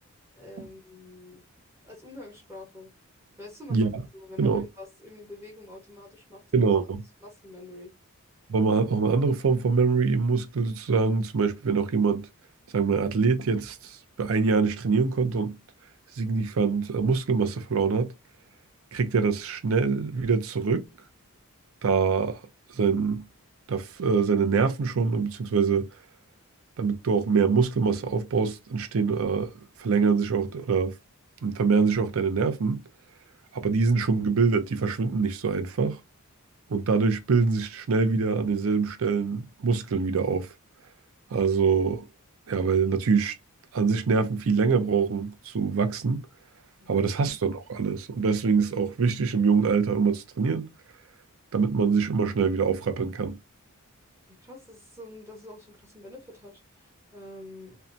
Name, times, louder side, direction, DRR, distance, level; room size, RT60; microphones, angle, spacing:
voice 1, 0.3-1.4 1.8-2.9 3.4-6.7 7.2-7.9 46.8-47.1 54.3-57.8, left 2 dB, 10° right, 0.7 m, -46 dB
voice 2, 3.7-4.0 4.4-4.6 6.5-7.0 8.5-12.3 12.7-15.6 16.2-18.1 18.9-20.8 21.8-22.4 22.7-23.3 23.7-25.9 26.8-29.5 29.8-30.9 31.4-32.8 33.5-36.0 36.7-40.5 41.3-42.0 42.5-43.4 43.7-46.3 46.9-50.7 51.5-53.4, right 5 dB, 65° right, 0.5 m, -24 dB
2.7 x 2.1 x 2.4 m
head